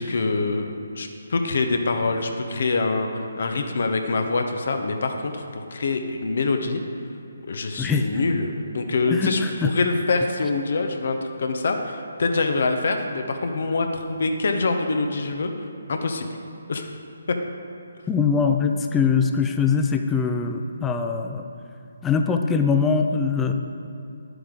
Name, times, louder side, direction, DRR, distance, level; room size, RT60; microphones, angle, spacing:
voice 1, 0.0-6.8 7.5-15.5 15.9-16.3 16.7-16.9 17.3-17.4, left 3 dB, 55° left, 5 dB, 0.8 m, -25 dB
voice 2, 7.8-8.1 9.1-9.7 18.1-21.4 22.0-23.5, left 5 dB, 10° left, 5 dB, 0.5 m, -22 dB
10.0 x 7.9 x 3.8 m, 2.5 s
figure-of-eight pair, 145°, 0 cm